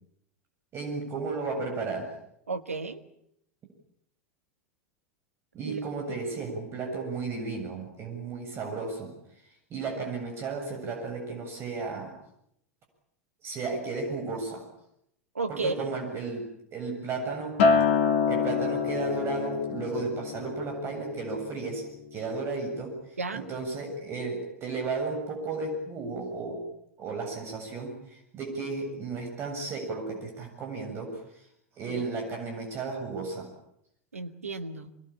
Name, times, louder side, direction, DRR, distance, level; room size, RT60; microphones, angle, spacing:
voice 1, 0.7-2.1 5.5-9.1 9.7-12.1 13.4-14.7 15.5-17.6 18.3-21.8 22.1-22.9 23.3-26.6 27.0-31.1 31.8-33.5, right 3 dB, 35° right, 3 dB, 7.9 m, -34 dB
voice 2, 2.5-3.0 5.6-5.8 15.3-15.9 23.2-23.5 31.9-32.0 34.1-34.9, right 3 dB, 80° right, 10 dB, 1.6 m, -33 dB
Acoustic guitar, 17.6-22.0 22.4-22.8, left 5 dB, 60° left, 2.1 m, -27 dB
25.5 x 21.0 x 8.8 m, 0.75 s
figure-of-eight pair, 85°, 7 cm